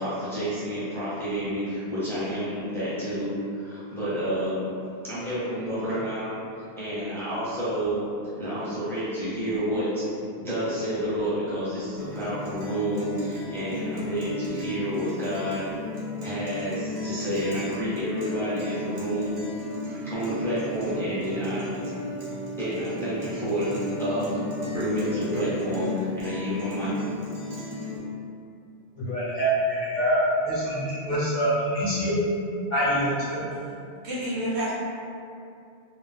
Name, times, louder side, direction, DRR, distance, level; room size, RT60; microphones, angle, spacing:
voice 1, 0.0-4.7 5.0-6.3 6.8-8.0 8.4-10.0 10.4-15.7 16.2-19.3 20.1-21.8 22.6-23.7 24.0-24.3 24.7-26.9 27.5-27.6, equal, 5° left, -11 dB, 0.6 m, -29 dB
Guitar, 12.0-28.0, left 1 dB, 45° right, 0.6 m, -35 dB
voice 2, 29.0-32.1 32.7-33.4, equal, 45° left, -10 dB, 0.9 m, -25 dB
voice 3, 34.0-34.7, right 1 dB, 75° right, -7 dB, 0.9 m, -28 dB
2.4 x 2.0 x 3.3 m, 2.5 s
omnidirectional pair, 1.1 m